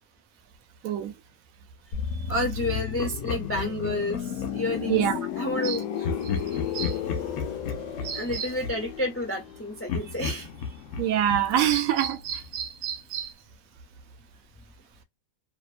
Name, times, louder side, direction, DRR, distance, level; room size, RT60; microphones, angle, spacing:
sound 1, 1.9-11.6 11.8-12.1, left 8 dB, 70° left, 0.9 m, -34 dB
voice 1, 2.1-5.0 5.4-6.2 8.1-10.7, left 1 dB, 20° left, 0.3 m, -30 dB
Laughter, 2.7-4.8 6.0-9.5 9.9-12.6, left 5 dB, 90° left, 1.1 m, -35 dB
voice 2, 4.9-5.2 5.6-5.8 6.7-7.0 8.0-8.5 11.0-13.3, right 10 dB, 75° right, 1.0 m, -26 dB
2.8 x 2.1 x 2.4 m
omnidirectional pair, 1.5 m